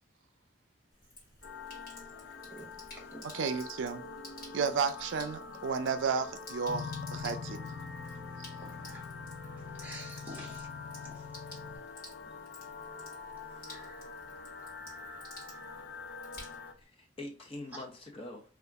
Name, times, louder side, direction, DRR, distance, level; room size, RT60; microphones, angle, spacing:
Sink (filling or washing), 0.9-16.8, left 1 dB, 50° left, 1.6 m, -53 dB
sound 1, 1.4-16.7, left 4 dB, 65° left, 0.5 m, -46 dB
voice 1, 3.2-4.0 4.5-7.7, right 5 dB, 85° right, 0.4 m, -33 dB
sound 2, 6.7-11.8, left 5 dB, 10° left, 1.3 m, -44 dB
voice 2, 8.6-9.0 9.8-10.7 11.0-11.1 13.7-14.1, right 1 dB, 10° right, 0.8 m, -48 dB
voice 3, 13.5-13.9 16.8-18.5, left 1 dB, 30° left, 0.7 m, -45 dB
2.8 x 2.4 x 3.4 m
head